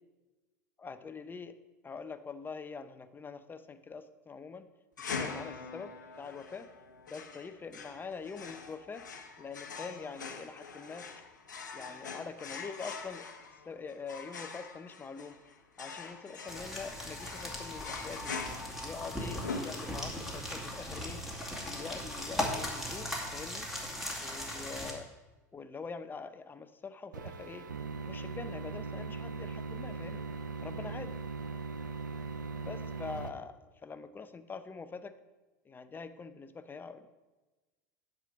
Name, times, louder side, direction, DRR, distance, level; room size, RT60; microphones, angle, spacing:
voice 1, 0.8-1.6 1.8-4.7 5.0-6.7 7.1-9.1 9.4-11.1 11.7-13.3 13.6-15.4 15.8-18.4 18.8-21.2 21.7-23.7 24.2-25.1 25.5-27.7 28.1-30.3 30.6-31.1 32.6-35.2 35.7-37.1, left 5 dB, 20° left, 11 dB, 0.7 m, -44 dB
sound 1, 5.0-20.3, left 5 dB, 90° left, 1.0 m, -43 dB
sound 2, 16.5-24.9, left 1 dB, 5° right, 2.4 m, -38 dB
sound 3, 27.1-33.3, right 4 dB, 85° right, 0.6 m, -39 dB
10.0 x 5.0 x 7.2 m, 1.2 s
hypercardioid pair, 80°, 10 cm